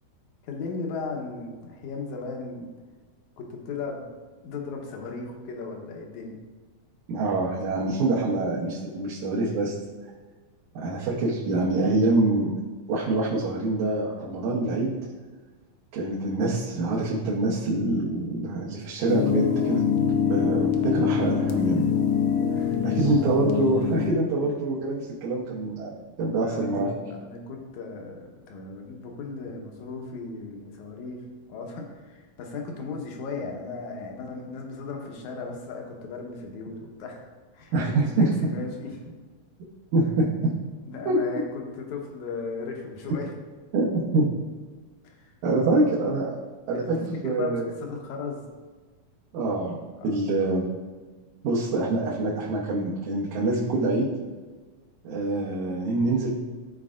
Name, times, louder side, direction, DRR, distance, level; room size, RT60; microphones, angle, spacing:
voice 1, 0.4-2.7 3.4-4.1 4.4-6.4 22.6-23.2 26.3-26.7 27.1-37.3 37.5-39.2 40.9-43.3 45.2-45.3 46.7-46.9 47.2-48.5 50.0-50.1, left 4 dB, 70° left, 1 dB, 2.3 m, -36 dB
voice 2, 7.1-9.8 10.8-12.5 12.9-15.0 15.9-19.8 20.3-21.8 22.8-25.9 26.2-26.9 37.7-38.3 39.9-40.5 41.1-41.2 43.7-44.3 45.4-46.3 46.7-47.7 49.3-49.8 50.0-50.7 51.4-54.1 55.0-56.3, right 2 dB, 70° right, -5 dB, 2.3 m, -25 dB
sound 1, 19.1-24.1, left 7 dB, 85° left, 1.4 m, -24 dB
14.0 x 4.7 x 2.5 m, 1.4 s
omnidirectional pair, 3.7 m